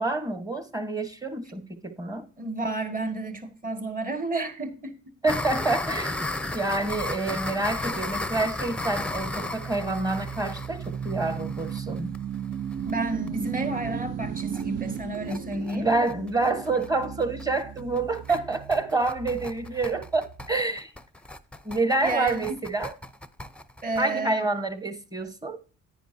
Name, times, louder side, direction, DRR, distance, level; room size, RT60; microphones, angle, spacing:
voice 1, 0.0-2.3 5.2-6.2 6.5-12.1 15.7-20.9 21.6-22.9 24.0-25.6, right 2 dB, 10° right, 1.2 m, -27 dB
voice 2, 2.4-5.0 6.7-6.8 12.9-15.9 18.3-18.4 22.0-22.5 23.8-24.5, right 2 dB, 30° right, 1.8 m, -31 dB
sound 1, 5.3-12.9 13.3-13.4 13.6-13.7 14.0-14.1 14.4-14.6 15.0-24.0, left 2 dB, 5° left, 0.6 m, -34 dB
sound 2, 6.4-20.6, right 8 dB, 55° right, 0.6 m, -37 dB
10.0 x 9.6 x 2.7 m
cardioid pair, 90°, 30 cm